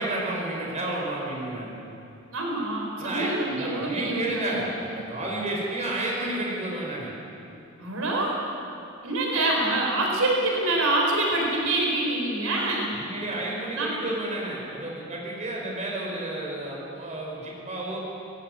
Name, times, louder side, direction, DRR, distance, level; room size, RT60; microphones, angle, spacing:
voice 1, 0.0-1.7 3.0-7.1 12.9-18.0, right 1 dB, 35° right, -2 dB, 4.8 m, -31 dB
voice 2, 2.3-4.6 7.8-8.3 9.0-13.0 13.7-13.9, right 2 dB, 80° right, -1 dB, 4.3 m, -26 dB
19.0 x 15.5 x 9.5 m, 2.7 s
head